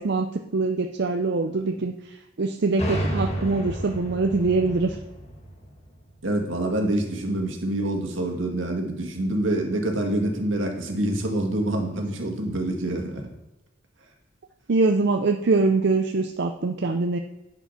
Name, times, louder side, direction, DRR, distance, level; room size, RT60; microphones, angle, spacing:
voice 1, 0.0-1.9 2.4-5.0 14.7-17.2, right 3 dB, 60° right, 5 dB, 0.5 m, -23 dB
sound 1, 2.8-6.4, right 1 dB, 35° left, 1.5 m, -31 dB
voice 2, 6.2-13.2, right 1 dB, 85° right, 2 dB, 2.0 m, -26 dB
10.0 x 5.1 x 5.7 m, 0.99 s
head